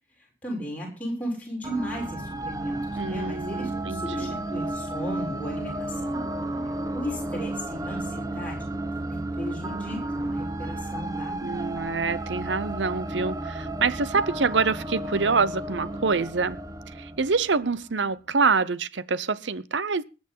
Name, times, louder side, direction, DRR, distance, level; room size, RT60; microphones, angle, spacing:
voice 1, 0.2-6.2 6.6-11.5, equal, 10° left, 6.7 m, -36 dB
sound 1, 1.6-17.8, right 1 dB, 20° right, 1.0 m, -32 dB
voice 2, 3.0-4.4 11.4-16.6 17.0-20.0, right 4 dB, 90° right, 0.8 m, -26 dB
21.0 x 8.1 x 5.5 m
head